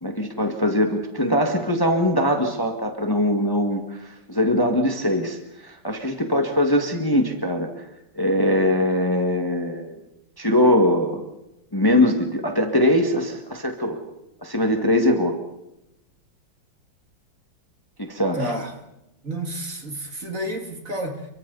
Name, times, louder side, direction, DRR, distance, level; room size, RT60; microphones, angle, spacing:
voice 1, 0.0-5.4 5.6-7.7 8.2-10.0 10.4-11.2 11.7-14.0 14.4-15.4 18.0-18.5, left 1 dB, 10° left, 4 dB, 1.8 m, -21 dB
voice 2, 18.4-18.7 19.2-21.3, right 1 dB, 40° right, 4 dB, 2.7 m, -30 dB
29.0 x 23.0 x 4.1 m, 0.88 s
omnidirectional pair, 2.2 m